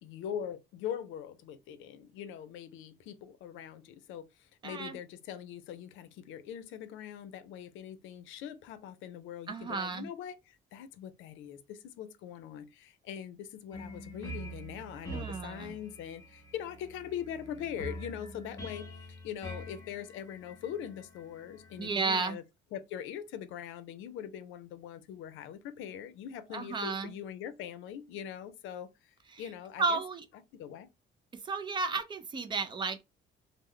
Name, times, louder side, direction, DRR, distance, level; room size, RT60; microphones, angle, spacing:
voice 1, 0.0-22.4 22.7-28.9 29.4-30.0 30.5-30.9, left 9 dB, 80° left, 0.5 m, -42 dB
voice 2, 4.6-5.0 9.5-10.1 15.1-15.8 21.8-22.4 26.5-27.2 29.3-29.4 29.8-30.2 31.4-33.0, right 4 dB, 25° right, 0.4 m, -33 dB
sound 1, 13.7-21.9, right 1 dB, 20° left, 0.8 m, -45 dB
3.2 x 2.1 x 3.6 m
cardioid pair, 170°, 20 cm